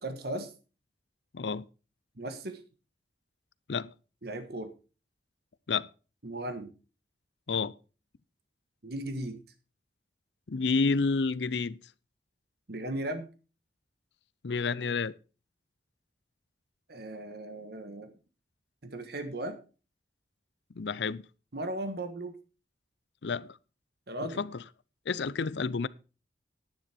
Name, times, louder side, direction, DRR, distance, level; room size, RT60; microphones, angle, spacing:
voice 1, 0.0-0.5 2.2-2.6 4.2-4.7 6.2-6.7 8.8-9.4 12.7-13.3 16.9-18.1 18.8-19.6 21.5-22.3 24.1-24.4, right 1 dB, 65° right, 1.5 m, -36 dB
voice 2, 1.3-1.6 3.7-3.9 5.7-5.9 7.5-7.7 10.5-11.8 14.4-15.1 20.8-21.2 23.2-23.6 24.4-24.5 25.1-25.9, left 4 dB, 75° left, 0.6 m, -29 dB
10.5 x 9.7 x 4.4 m
head